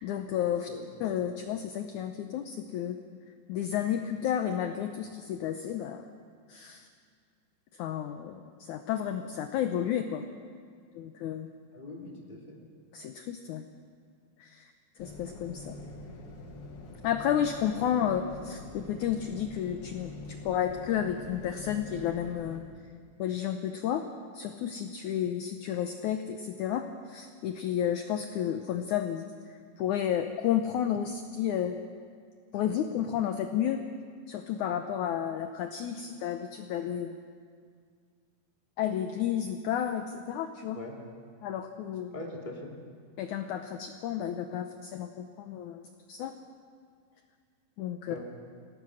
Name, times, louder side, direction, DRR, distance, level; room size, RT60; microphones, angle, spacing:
voice 1, 0.0-0.7 1.0-3.0 3.5-6.0 6.5-6.9 7.7-10.2 10.9-11.5 12.9-13.6 14.4-15.8 17.0-20.1 20.4-22.6 23.2-24.1 24.3-31.8 32.5-33.8 34.3-37.2 38.8-40.8 41.4-42.1 43.2-46.3 47.8-48.1, left 9 dB, 75° left, 7 dB, 1.8 m, -32 dB
voice 2, 11.7-12.6 40.7-40.9 42.1-42.7 48.1-48.2, left 2 dB, 15° left, 0 dB, 2.3 m, -41 dB
sound 1, 15.0-22.6, left 2 dB, 45° left, 2.3 m, -45 dB
27.5 x 18.0 x 6.4 m, 2.1 s
omnidirectional pair, 4.5 m